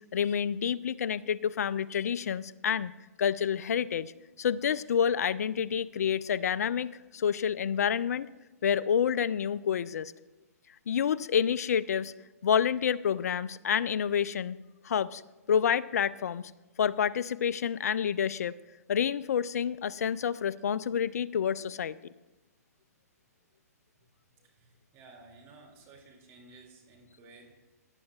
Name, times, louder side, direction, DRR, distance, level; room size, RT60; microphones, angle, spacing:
voice 1, 0.0-2.9 3.2-4.1 4.4-8.3 8.6-10.1 10.9-12.1 12.4-14.6 14.8-15.2 15.5-16.5 16.8-18.6 18.9-22.0, left 8 dB, 70° left, 16 dB, 0.4 m, -28 dB
voice 2, 24.4-27.7, right 3 dB, 30° right, 0 dB, 2.5 m, -55 dB
17.5 x 9.7 x 2.4 m, 1.1 s
hypercardioid pair, 125°, 9 cm